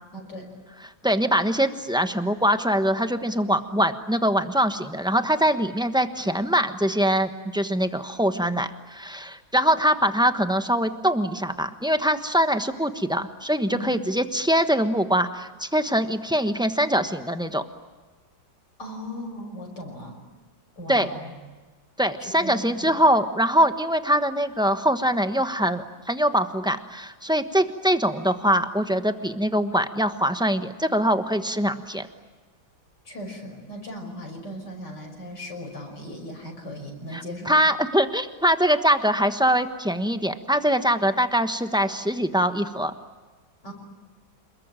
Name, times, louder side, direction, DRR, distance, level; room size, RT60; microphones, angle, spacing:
voice 1, 0.1-0.5 13.7-13.9 18.8-20.2 20.8-21.3 22.2-22.9 33.0-37.6 43.6-43.7, equal, 60° left, 1 dB, 6.4 m, -37 dB
voice 2, 1.0-17.6 20.9-21.1 22.0-32.1 37.1-42.9, equal, 5° right, 8 dB, 0.9 m, -23 dB
28.0 x 21.5 x 9.1 m, 1.3 s
omnidirectional pair, 2.1 m